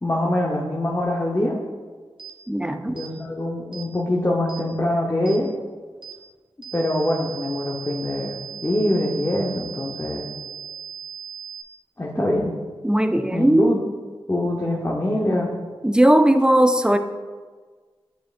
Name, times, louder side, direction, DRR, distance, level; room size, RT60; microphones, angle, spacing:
voice 1, 0.0-1.6 2.9-5.5 6.7-10.3 12.0-12.5 13.3-13.8 14.3-15.5, left 1 dB, 25° left, -3 dB, 1.0 m, -24 dB
sound 1, 2.2-2.4 3.0-3.1 3.7-3.9 4.5-4.7 5.3-5.4 6.0-6.2 6.6-11.6, right 8 dB, 55° right, 1.0 m, -38 dB
voice 2, 2.5-3.0 12.2-12.5 12.8-13.7 15.8-17.0, right 1 dB, 10° right, 8 dB, 0.5 m, -18 dB
9.0 x 4.9 x 2.5 m, 1.4 s
cardioid pair, 45°, 10 cm